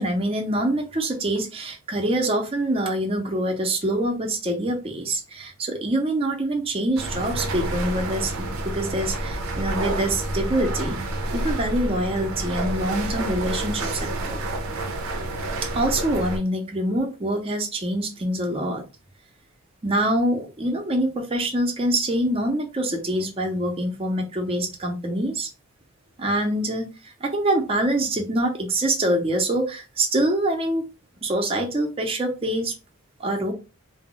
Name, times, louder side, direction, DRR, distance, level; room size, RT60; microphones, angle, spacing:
voice 1, 0.0-11.0 11.3-14.4 15.7-18.8 19.8-25.5 26.2-30.8 31.2-32.7 33.2-33.5, right 1 dB, 25° right, 2 dB, 0.5 m, -25 dB
sound 1, 7.0-16.4, right 1 dB, 80° right, 0.5 m, -29 dB
2.2 x 2.0 x 3.7 m, 0.30 s
head